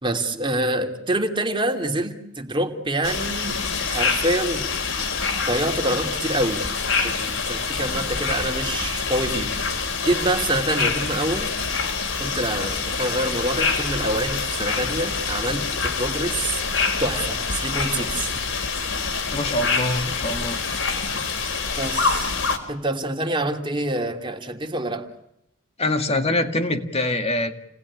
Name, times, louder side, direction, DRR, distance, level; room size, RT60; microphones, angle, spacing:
voice 1, 0.0-3.6 3.9-4.7 5.5-6.6 6.9-9.5 10.0-11.5 12.2-16.6 17.0-18.3 21.8-22.3 22.7-25.1, right 1 dB, 25° right, 4 dB, 2.8 m, -26 dB
sound 1, 3.0-22.6, left 5 dB, 75° left, 4.3 m, -26 dB
voice 2, 19.3-20.6 25.8-27.5, left 1 dB, 35° left, 6 dB, 2.1 m, -24 dB
29.5 x 19.5 x 9.9 m, 0.79 s
head